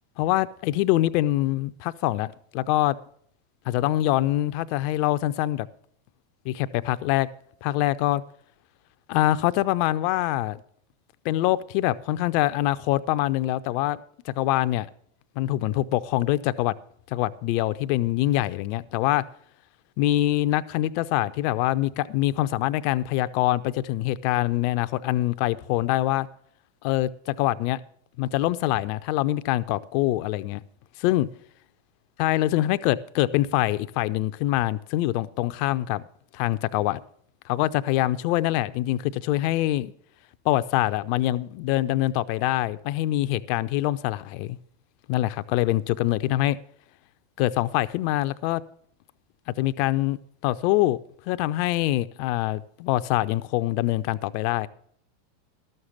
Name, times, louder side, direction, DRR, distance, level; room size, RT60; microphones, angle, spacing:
voice 1, 0.2-3.0 3.7-5.7 6.5-7.3 7.6-8.2 9.1-10.6 11.2-14.0 14.3-14.9 15.4-16.7 17.1-19.2 20.0-26.3 26.8-27.8 28.2-30.6 31.0-31.3 32.2-36.0 36.3-37.0 37.5-39.9 40.4-44.6 45.1-46.6 47.4-48.6 49.6-51.0 51.3-54.7, left 15 dB, 55° left, 0.5 m, -24 dB
12.5 x 6.6 x 7.2 m
hypercardioid pair, 95°, 0 cm